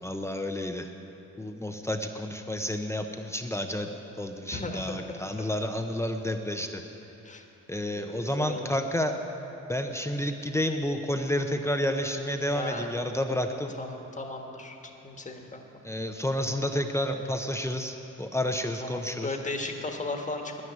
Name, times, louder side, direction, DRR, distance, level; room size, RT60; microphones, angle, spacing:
voice 1, 0.0-0.9 1.4-3.9 4.2-6.8 7.7-9.2 9.7-13.7 15.8-19.3, left 1 dB, 10° left, 4 dB, 0.7 m, -30 dB
voice 2, 4.5-5.5 7.2-7.5 7.9-8.7 12.5-12.9 13.8-14.8 15.0-15.6 18.8-20.6, left 2 dB, 25° left, 3 dB, 1.5 m, -36 dB
10.0 x 9.6 x 9.3 m, 3.0 s
cardioid pair, 90°, 30 cm